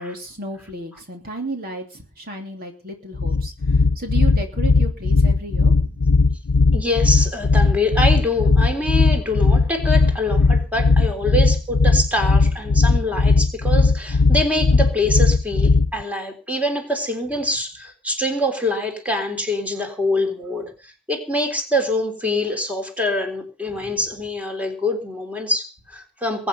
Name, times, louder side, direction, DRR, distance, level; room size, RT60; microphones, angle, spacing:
voice 1, 0.0-6.2 23.7-24.0, right 1 dB, 40° right, 3 dB, 3.0 m, -33 dB
sound 1, 3.1-16.0, left 3 dB, 85° left, 0.7 m, -17 dB
voice 2, 6.7-26.5, left 1 dB, 5° right, 4 dB, 3.6 m, -25 dB
22.5 x 9.4 x 5.5 m, 0.35 s
head